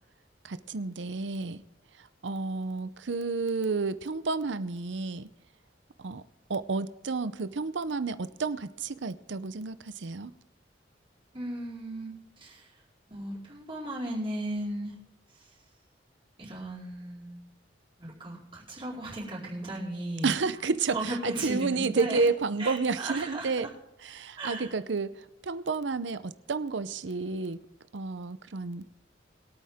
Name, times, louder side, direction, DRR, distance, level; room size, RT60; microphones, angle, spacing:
voice 1, 0.4-1.6 1.9-5.3 6.0-6.2 6.5-10.3 20.2-23.7 24.0-27.6 27.9-28.8, right 4 dB, 80° right, 13 dB, 0.7 m, -31 dB
voice 2, 11.3-12.1 12.4-12.7 13.1-14.9 15.3-15.5 16.4-17.4 18.0-20.3 20.9-22.2 22.6-23.5 24.4-24.7, right 1 dB, 30° right, -7 dB, 4.5 m, -36 dB
22.0 x 8.7 x 3.6 m, 0.89 s
head